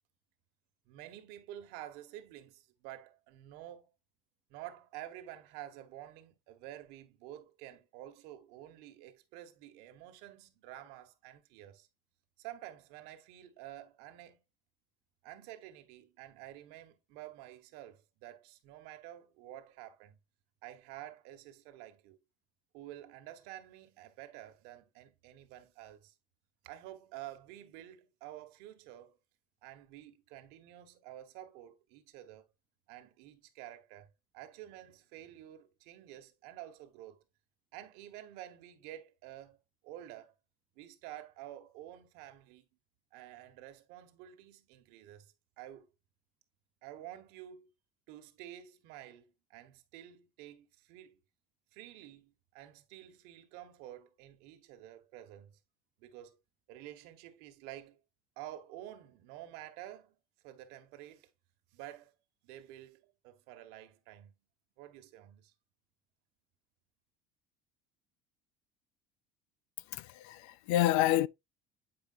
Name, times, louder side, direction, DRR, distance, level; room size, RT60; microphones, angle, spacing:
voice 1, 0.8-3.9 4.5-11.9 12.4-14.4 15.2-20.2 20.6-22.2 22.7-26.1 26.6-29.2 29.6-32.5 32.9-34.1 34.3-37.2 37.7-39.6 39.8-40.3 40.7-42.7 43.1-45.9 46.8-47.7 48.1-51.2 51.7-55.6 56.0-56.4 56.7-58.0 58.4-60.2 60.4-61.3 61.7-62.1 62.4-64.3 64.8-65.5, right 13 dB, 70° right, 1.5 m, -50 dB
voice 2, 69.9-71.3, left 14 dB, 90° left, 0.5 m, -28 dB
9.0 x 5.1 x 2.6 m
cardioid pair, 160°, 17 cm